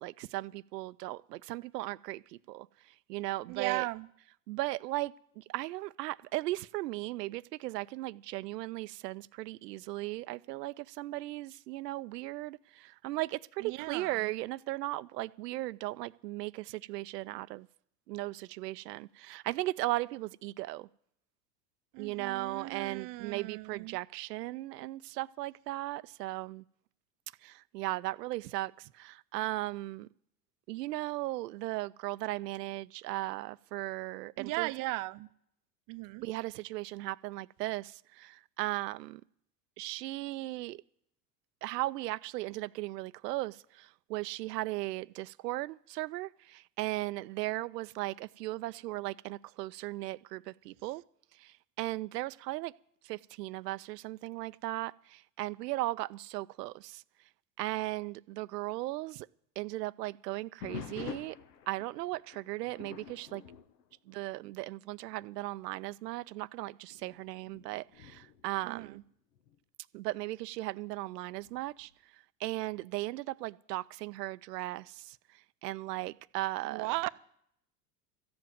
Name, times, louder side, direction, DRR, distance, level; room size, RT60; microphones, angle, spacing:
voice 1, 0.0-2.2 2.5-2.7 3.1-3.9 4.5-5.1 5.5-17.6 18.1-20.9 22.0-26.6 27.4-28.7 29.0-30.1 30.7-34.7 36.2-37.9 38.2-39.2 39.8-40.8 41.6-43.6 44.1-51.0 51.8-52.7 53.1-54.9 55.4-57.0 57.6-59.3 59.6-61.4 61.7-63.4 64.1-69.0 69.9-71.9 72.4-74.8 75.6-76.9, right 18 dB, 85° right, 0.5 m, -37 dB
voice 2, 3.5-4.1 13.6-14.3 21.9-24.0 34.4-35.3 35.9-36.3 68.6-69.0 76.6-77.1, right 20 dB, 45° right, 0.6 m, -37 dB
sound 1, 60.6-64.7 65.1-65.4 66.0-66.1 66.9-69.6 71.4-71.9, left 8 dB, 90° left, 1.1 m, -48 dB
13.5 x 7.8 x 9.2 m
hypercardioid pair, 90°, 47 cm